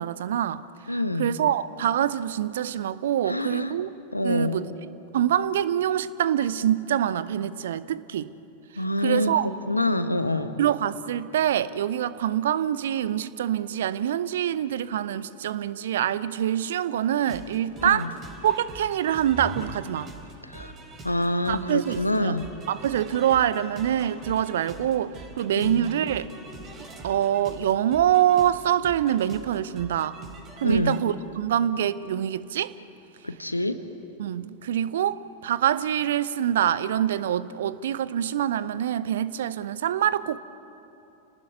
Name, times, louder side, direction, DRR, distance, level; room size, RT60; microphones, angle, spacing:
voice 1, 0.0-3.9 4.2-4.7 5.1-8.3 8.7-9.5 10.6-18.1 18.4-20.1 21.5-22.4 22.7-26.3 27.0-30.2 30.6-32.7 34.2-40.4, right 10 dB, 60° right, 0.8 m, -25 dB
voice 2, 0.9-1.3 3.3-3.7 4.1-4.6 8.8-9.3 9.7-10.6 17.8-18.1 20.4-20.7 21.0-22.5 25.5-25.8 30.6-31.0 33.2-33.8, left 1 dB, 85° left, 1.2 m, -26 dB
sound 1, 17.2-31.0, right 2 dB, 25° right, 4.8 m, -43 dB
29.5 x 18.5 x 9.7 m
figure-of-eight pair, 90°, 0 cm